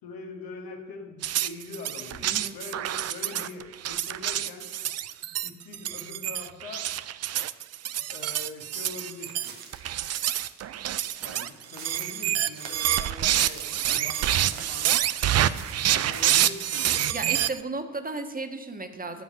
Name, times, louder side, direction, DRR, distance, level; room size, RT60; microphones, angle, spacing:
voice 1, 0.0-4.7 5.4-6.9 8.1-9.5 11.2-15.0 15.9-17.1, left 3 dB, 65° left, 2 dB, 2.2 m, -43 dB
sound 1, 1.2-17.6, right 11 dB, 40° right, 0.5 m, -27 dB
voice 2, 2.2-2.5 17.1-19.2, right 3 dB, 20° right, 6 dB, 1.6 m, -34 dB
sound 2, 8.9-16.9, right 6 dB, 65° right, 1.6 m, -45 dB
13.5 x 5.3 x 8.7 m, 1.2 s
figure-of-eight pair, 40°, 39 cm